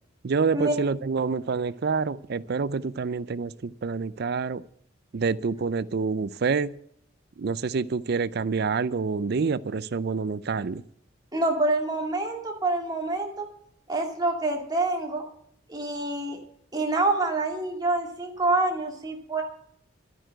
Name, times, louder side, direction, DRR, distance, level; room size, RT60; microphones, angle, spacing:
voice 1, 0.2-4.6 5.1-6.7 7.4-10.8, right 5 dB, 50° right, 0.4 m, -27 dB
voice 2, 11.3-13.5 13.9-15.2 15.7-16.4 16.7-19.4, right 2 dB, 20° right, 2.5 m, -26 dB
12.5 x 9.2 x 7.8 m
head